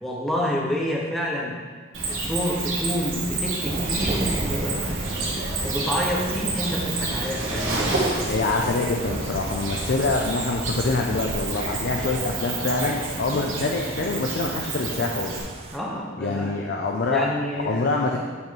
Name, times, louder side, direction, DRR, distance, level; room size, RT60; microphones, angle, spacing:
voice 1, 0.0-1.5 2.0-8.0 9.7-9.8 13.3-13.4 15.7-16.6 17.1-18.2, equal, ahead, -3 dB, 0.9 m, -29 dB
Cricket, 1.9-15.4, right 3 dB, 80° right, 1.3 m, -29 dB
sound 1, 3.6-15.8, right 2 dB, 30° right, 0.4 m, -34 dB
voice 2, 8.3-15.4 16.2-17.3 17.6-18.2, left 3 dB, 55° left, 1 dB, 0.5 m, -25 dB
8.2 x 3.3 x 4.5 m, 1.5 s
head